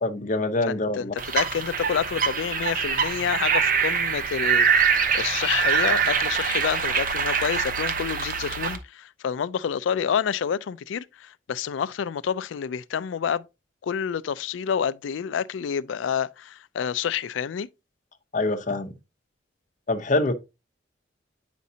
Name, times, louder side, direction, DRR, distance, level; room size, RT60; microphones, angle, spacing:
voice 1, 0.0-1.1 18.3-18.9 19.9-20.3, left 2 dB, 40° left, 0.7 m, -25 dB
voice 2, 0.7-13.4 13.8-17.7, left 7 dB, 85° left, 0.4 m, -28 dB
sound 1, 1.2-8.8, right 6 dB, 45° right, 0.8 m, -24 dB
8.2 x 5.2 x 2.7 m
head